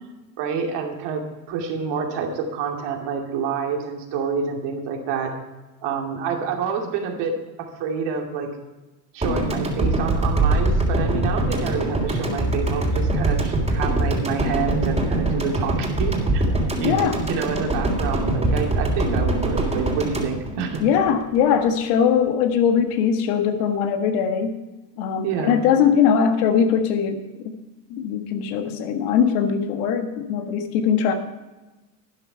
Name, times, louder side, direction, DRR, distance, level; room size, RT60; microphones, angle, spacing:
voice 1, 0.4-5.3 5.8-8.5 9.1-16.4 16.8-20.8 25.2-25.6, right 5 dB, 55° right, 2 dB, 2.6 m, -28 dB
sound 1, 9.2-21.4, right 2 dB, 15° right, 3.3 m, -23 dB
voice 2, 16.8-17.2 20.8-24.6 25.0-27.5 27.9-31.1, left 7 dB, 65° left, 6 dB, 1.6 m, -21 dB
12.5 x 10.0 x 4.6 m, 1.1 s
hypercardioid pair, 80°, 48 cm